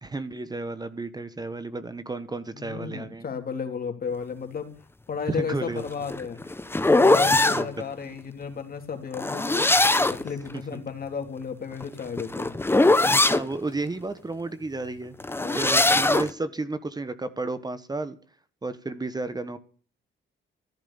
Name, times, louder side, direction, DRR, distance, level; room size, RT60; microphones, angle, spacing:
voice 1, 0.0-3.3 5.3-5.8 7.3-7.7 10.7-10.8 13.0-15.1 15.5-18.2 18.6-19.6, right 3 dB, 20° right, 12 dB, 1.3 m, -32 dB
voice 2, 2.5-4.7 5.1-6.4 6.9-9.7 10.1-12.5 15.4-15.8, left 6 dB, 50° left, 6 dB, 3.5 m, -33 dB
sound 1, 5.9-7.7 9.1-10.3 11.7-13.4 15.2-16.3, left 2 dB, 10° left, 1.1 m, -21 dB
15.0 x 10.5 x 7.1 m, 0.41 s
cardioid pair, 90°, 20 cm